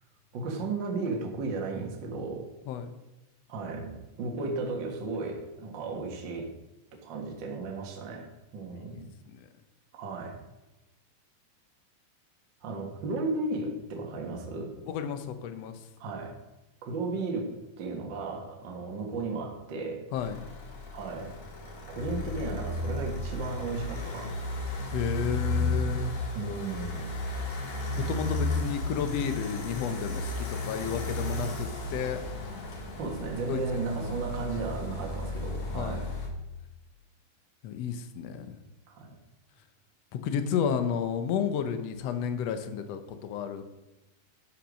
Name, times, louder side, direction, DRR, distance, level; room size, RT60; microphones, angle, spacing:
voice 1, 0.3-2.5 3.5-6.5 7.0-9.1 9.9-10.4 12.6-14.7 16.0-16.3 16.8-17.5 17.8-20.0 20.9-21.4 21.6-24.9 26.3-27.1 33.0-36.1 38.9-39.2, right 3 dB, 45° right, 1 dB, 1.7 m, -35 dB
voice 2, 14.8-15.8 20.1-20.5 24.9-26.1 28.0-32.2 33.5-34.1 35.7-36.1 37.6-38.6 40.1-43.6, left 7 dB, 80° left, 9 dB, 1.4 m, -32 dB
sound 1, 20.2-36.3, left 1 dB, 55° left, 2.6 m, -34 dB
11.5 x 5.9 x 6.3 m, 1.0 s
omnidirectional pair, 4.0 m